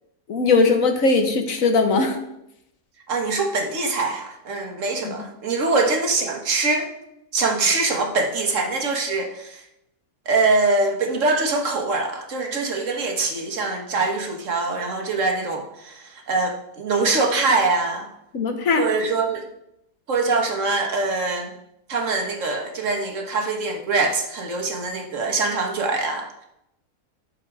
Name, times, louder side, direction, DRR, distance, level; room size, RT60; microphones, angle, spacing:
voice 1, 0.3-2.2 5.0-5.1 18.3-18.8, left 4 dB, 65° left, 5 dB, 1.6 m, -19 dB
voice 2, 3.1-6.9 7.3-9.6 10.2-18.1 18.8-19.5 20.1-21.5 21.9-26.5, right 3 dB, 60° right, 3 dB, 1.7 m, -23 dB
10.5 x 6.6 x 4.8 m, 0.83 s
omnidirectional pair, 1.5 m